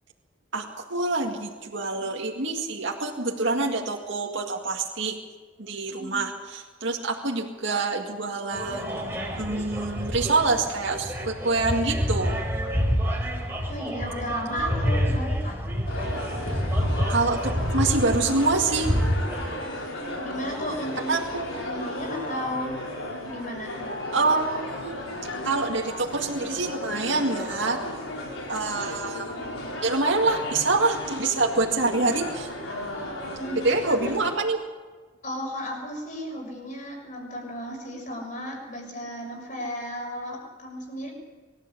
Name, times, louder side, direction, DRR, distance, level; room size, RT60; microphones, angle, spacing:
voice 1, 0.9-5.2 5.6-12.3 17.1-18.9 21.1-21.5 24.1-25.0 25.4-27.8 28.5-29.4 29.8-32.5 33.6-34.6, right 3 dB, 65° right, 0 dB, 2.1 m, -26 dB
voice 2, 6.0-6.3 13.7-15.6 19.9-22.8 23.2-23.8 33.3-34.0 35.2-41.1, equal, 40° left, 1 dB, 6.4 m, -35 dB
sound 1, 8.5-19.5, equal, 10° right, 3.9 m, -28 dB
sound 2, 15.9-34.4, left 1 dB, 90° left, 4.7 m, -35 dB
24.0 x 13.5 x 8.4 m, 1.3 s
head